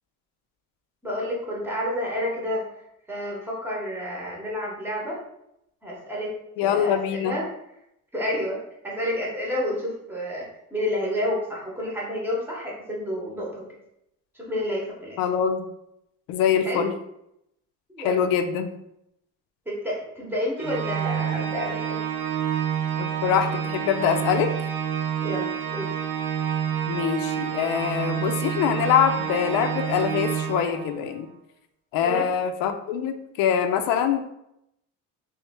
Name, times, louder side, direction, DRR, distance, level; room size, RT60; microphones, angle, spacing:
voice 1, 1.0-2.6 3.1-5.2 5.8-6.3 6.6-7.4 8.1-13.7 14.3-15.2 16.6-16.8 17.9-18.2 19.7-22.0 25.2-26.0 32.0-32.3, left 1 dB, 5° right, -4 dB, 0.8 m, -30 dB
voice 2, 6.6-7.3 15.2-15.7 16.3-16.9 18.0-18.7 23.0-24.5 26.9-31.3 31.9-34.2, left 8 dB, 90° left, 8 dB, 0.5 m, -24 dB
Organ, 20.6-31.2, right 8 dB, 90° right, 0.7 m, -28 dB
3.1 x 3.0 x 3.4 m, 0.81 s
cardioid pair, 165°, 33 cm